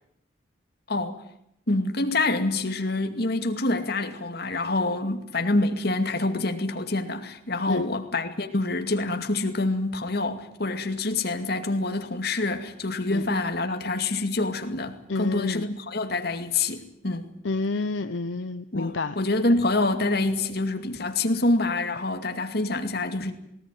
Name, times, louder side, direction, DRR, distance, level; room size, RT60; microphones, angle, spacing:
voice 1, 1.7-17.3 18.7-23.3, left 2 dB, 55° left, 2.3 m, -26 dB
voice 2, 15.1-15.7 17.4-19.1, left 3 dB, 80° left, 0.8 m, -29 dB
19.5 x 19.0 x 9.2 m
head